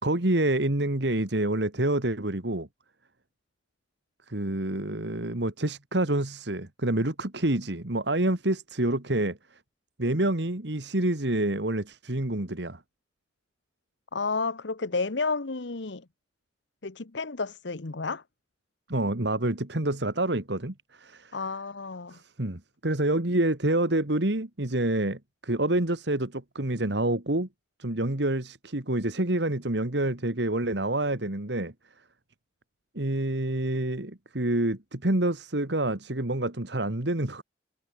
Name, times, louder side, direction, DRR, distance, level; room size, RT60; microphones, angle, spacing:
voice 1, 0.0-2.7 4.3-9.4 10.0-12.8 18.9-21.4 22.1-27.5 27.8-31.7 32.9-37.4, right 1 dB, 65° right, 2.2 m, -27 dB
voice 2, 14.1-16.0 16.8-18.2 21.3-22.2, left 4 dB, 75° left, 1.1 m, -31 dB
head